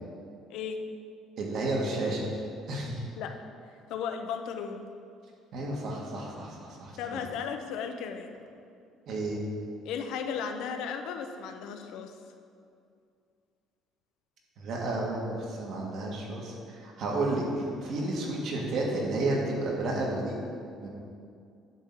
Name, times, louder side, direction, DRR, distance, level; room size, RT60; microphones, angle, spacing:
voice 1, 0.5-0.8 3.2-3.4 3.9-4.9 7.0-8.4 9.8-12.1, left 7 dB, 75° left, 6 dB, 0.7 m, -35 dB
voice 2, 1.4-2.2 2.7-3.0 5.5-7.2 9.1-9.4 14.6-20.4 20.8-20.9, right 2 dB, 55° right, -2 dB, 1.8 m, -31 dB
10.0 x 3.8 x 7.1 m, 2.4 s
cardioid pair, 150°, 0 cm